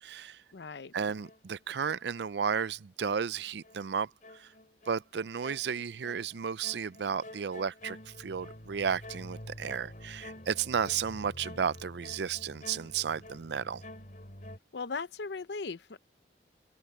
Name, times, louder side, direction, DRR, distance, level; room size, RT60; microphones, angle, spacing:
voice 1, 0.0-0.4 0.9-4.5 4.9-13.8, right 7 dB, 75° right, 0.5 m, -33 dB
voice 2, 0.5-0.9 14.7-16.0, left 4 dB, 75° left, 0.7 m, -38 dB
sound 1, 1.2-2.6 3.0-14.6, left 1 dB, 45° left, 4.1 m, -48 dB
open air
head